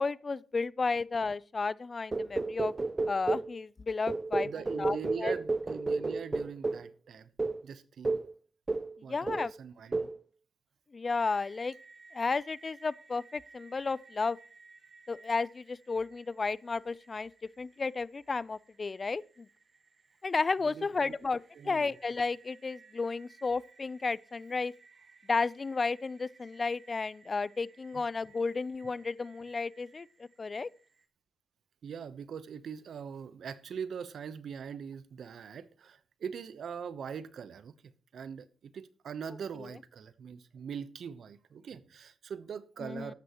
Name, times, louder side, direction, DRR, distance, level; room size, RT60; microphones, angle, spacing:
voice 1, 0.0-2.7 3.1-4.5 4.8-5.3 9.1-9.5 10.9-11.8 12.1-14.4 15.1-17.3 17.6-19.5 20.2-21.4 21.6-24.7 25.3-30.7 39.6-39.7 42.8-43.1, left 4 dB, 40° left, 0.5 m, -33 dB
sound 1, 2.1-3.5 4.1-6.9 7.4-7.6 8.0-8.3 8.7-9.0 9.3-9.6 9.9-10.2, right 3 dB, 30° right, 0.4 m, -32 dB
voice 2, 4.4-7.3 7.6-8.2 9.0-10.1 20.6-21.2 21.5-21.9 27.9-28.0 31.8-37.7 38.1-43.1, right 7 dB, 70° right, 0.9 m, -42 dB
sound 2, 11.1-31.1, right 4 dB, 50° right, 1.7 m, -60 dB
13.0 x 11.5 x 3.0 m
supercardioid pair, 55°, 0 cm